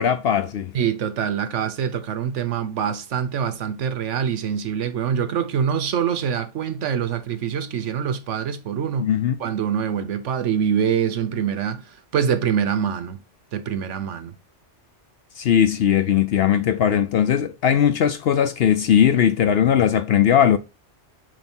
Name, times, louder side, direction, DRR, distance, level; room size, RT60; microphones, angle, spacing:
voice 1, 0.0-0.7 9.0-9.4 15.4-20.6, left 9 dB, 65° left, 0.7 m, -19 dB
voice 2, 0.7-9.1 9.4-13.2 13.5-14.3, right 8 dB, 80° right, 1.2 m, -25 dB
8.9 x 3.4 x 4.3 m
omnidirectional pair, 1.2 m